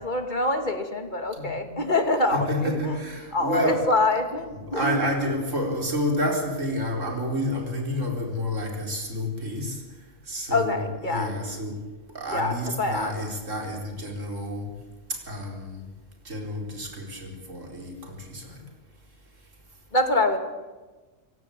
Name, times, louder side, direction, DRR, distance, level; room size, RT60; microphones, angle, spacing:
voice 1, 0.0-3.0 3.3-5.1 10.5-11.3 12.3-13.1 19.9-20.4, left 2 dB, 35° left, 6 dB, 2.6 m, -25 dB
voice 2, 1.3-1.8 2.3-3.9 4.5-11.8 12.1-14.7 15.1-15.9 16.2-18.7, equal, 60° right, 1 dB, 4.8 m, -30 dB
26.0 x 17.0 x 8.6 m, 1.2 s
omnidirectional pair, 1.4 m